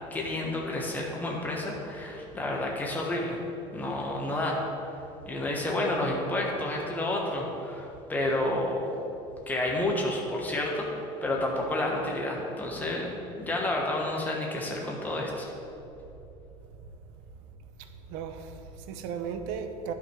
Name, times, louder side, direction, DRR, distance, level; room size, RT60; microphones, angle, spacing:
voice 1, 0.1-3.4 3.7-4.6 4.9-5.0 5.2-8.9 9.5-10.9 11.2-13.1 13.4-15.5, left 1 dB, 15° left, -2 dB, 1.4 m, -30 dB
voice 2, 17.8-19.9, right 6 dB, 90° right, 8 dB, 0.7 m, -36 dB
11.0 x 5.9 x 4.7 m, 2.8 s
cardioid pair, 155°, 13 cm